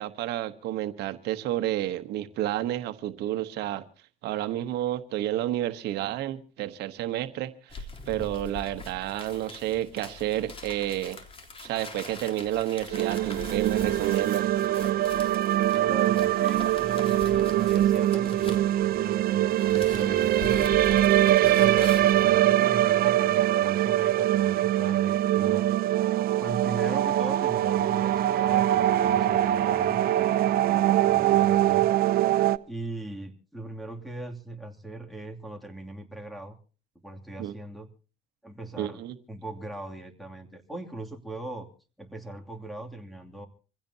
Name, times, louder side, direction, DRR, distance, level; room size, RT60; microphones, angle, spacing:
voice 1, 0.0-3.8 4.2-11.2 11.6-14.5 37.4-37.5 38.8-39.2, right 13 dB, 80° right, 1.2 m, -30 dB
sound 1, 7.7-19.2 19.4-22.3, left 3 dB, 35° left, 3.6 m, -42 dB
sound 2, 12.9-32.6, right 13 dB, 65° right, 0.7 m, -23 dB
voice 2, 15.7-20.5 21.4-25.7 26.4-31.9 32.7-36.6 37.0-37.9 38.4-39.0 39.3-41.7 42.0-43.5, right 2 dB, ahead, 2.7 m, -40 dB
26.0 x 16.0 x 2.8 m
cardioid pair, 110°, 17 cm